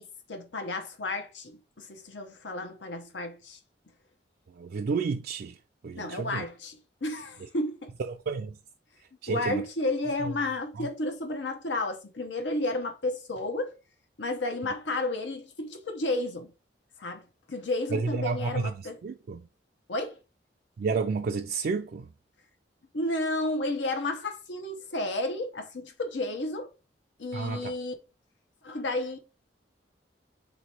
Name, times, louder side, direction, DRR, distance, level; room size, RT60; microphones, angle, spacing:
voice 1, 0.0-3.6 6.0-7.9 9.3-13.7 14.2-16.5 17.0-17.2 17.5-19.0 19.9-20.2 22.9-26.7 27.2-27.9 28.6-29.2, left 2 dB, 85° left, 0.9 m, -32 dB
voice 2, 4.6-5.5 5.8-6.5 8.1-8.6 9.2-9.6 10.2-10.3 10.8-10.9 17.9-18.7 19.0-19.4 20.8-22.1 27.3-27.7, right 4 dB, 55° right, 0.3 m, -31 dB
4.0 x 3.0 x 4.2 m
head